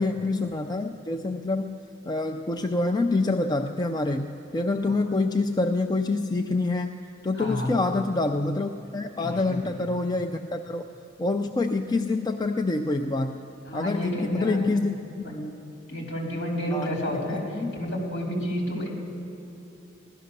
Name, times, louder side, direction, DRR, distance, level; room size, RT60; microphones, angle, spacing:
voice 1, 0.0-1.8 2.0-6.9 7.2-10.8 11.2-13.5 13.7-14.9 16.7-16.9 17.3-17.8, left 3 dB, 20° left, 5 dB, 0.4 m, -26 dB
voice 2, 7.4-7.7 9.2-9.8 13.7-14.6 15.2-15.4 15.9-17.4 17.7-18.9, equal, 55° left, -1 dB, 3.7 m, -30 dB
16.5 x 12.0 x 6.7 m, 2.9 s
head